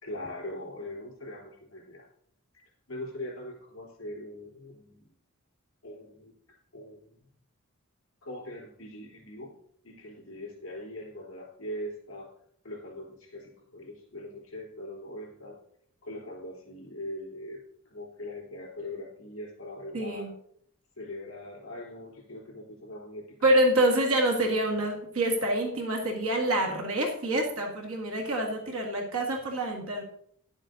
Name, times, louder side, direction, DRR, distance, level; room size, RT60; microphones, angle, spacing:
voice 1, 0.0-2.1 2.9-5.1 5.8-6.4 6.7-7.2 8.2-9.5 9.8-12.3 12.6-15.6 16.0-20.3 21.0-23.5, left 1 dB, 65° left, -1 dB, 3.7 m, -41 dB
voice 2, 19.9-20.3 23.4-30.0, right 1 dB, 80° right, 2 dB, 1.9 m, -26 dB
11.0 x 7.4 x 3.9 m, 0.66 s
head